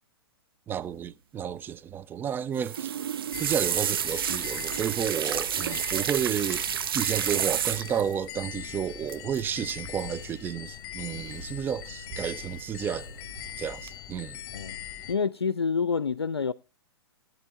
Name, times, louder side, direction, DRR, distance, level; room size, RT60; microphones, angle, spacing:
voice 1, 0.7-2.9 3.4-13.2 13.6-14.4, right 8 dB, 15° right, 0.5 m, -31 dB
sound 1, 2.6-8.1 9.1-9.4 9.7-10.0 11.2-11.7 12.1-12.6 13.1-13.5 13.9-14.0, right 9 dB, 60° right, 0.6 m, -30 dB
sound 2, 3.3-15.1, left 10 dB, 35° left, 1.5 m, -41 dB
voice 2, 15.1-16.5, left 5 dB, 85° left, 0.5 m, -27 dB
16.0 x 9.0 x 3.6 m
figure-of-eight pair, 115°, 13 cm